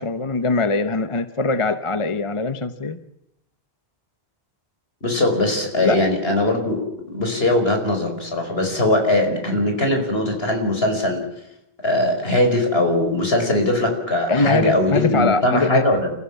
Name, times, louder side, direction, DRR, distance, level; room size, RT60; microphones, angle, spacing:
voice 1, 0.0-3.0 5.8-6.1 14.3-15.9, left 3 dB, 30° left, 10 dB, 1.0 m, -22 dB
voice 2, 5.0-6.8 7.1-11.2 11.8-16.1, left 1 dB, 70° left, 4 dB, 5.5 m, -20 dB
30.0 x 15.0 x 7.3 m, 0.82 s
omnidirectional pair, 1.1 m